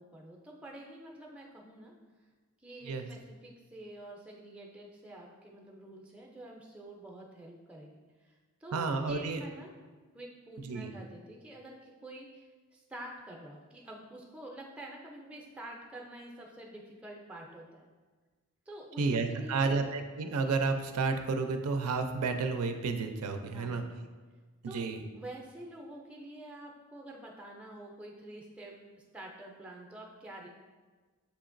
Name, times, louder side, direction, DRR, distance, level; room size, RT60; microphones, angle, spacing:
voice 1, 0.0-1.9 2.6-9.7 10.1-17.9 18.7-19.7 23.4-24.0 24.6-24.9 25.1-28.7 29.1-30.5, right 1 dB, 5° right, -1 dB, 0.4 m, -48 dB
voice 2, 8.7-9.4 10.6-10.9 19.0-23.8 24.7-25.0, right 4 dB, 90° right, 6 dB, 0.4 m, -31 dB
6.9 x 2.9 x 2.5 m, 1.4 s
head